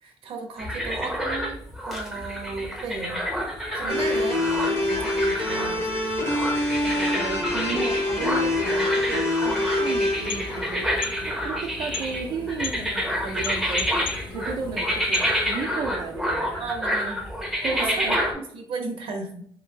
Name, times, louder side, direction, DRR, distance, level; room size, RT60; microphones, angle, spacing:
voice 1, 0.0-3.2 3.7-6.3 16.6-17.2 17.7-19.5, right 3 dB, 80° right, 3 dB, 0.8 m, -35 dB
sound 1, 0.6-18.3, equal, ahead, 0.6 m, -29 dB
voice 2, 3.8-4.3 6.8-11.1 11.4-13.9 14.3-16.7 17.6-18.2, right 5 dB, 55° right, 1 dB, 0.3 m, -34 dB
sound 2, 3.9-12.0, left 1 dB, 25° left, 0.8 m, -26 dB
sound 3, 10.0-15.7, left 7 dB, 70° left, 0.4 m, -38 dB
3.2 x 3.0 x 2.2 m, 0.62 s
cardioid pair, 145°, 9 cm